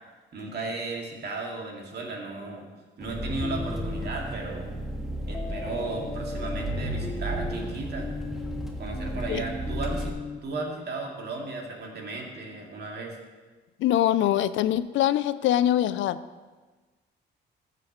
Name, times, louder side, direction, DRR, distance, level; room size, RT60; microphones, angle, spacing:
voice 1, 0.3-2.7 3.0-4.7 5.3-8.1 8.8-10.1 10.4-13.2, right 3 dB, 55° right, 0 dB, 2.2 m, -35 dB
Engine, 3.0-10.1, right 1 dB, ahead, 1.5 m, -33 dB
sound 1, 3.4-4.2 5.3-10.4, left 3 dB, 15° left, 0.6 m, -38 dB
voice 2, 13.8-16.2, left 12 dB, 75° left, 14 dB, 0.4 m, -23 dB
15.0 x 7.7 x 3.1 m, 1.3 s
cardioid pair, 90°, 20 cm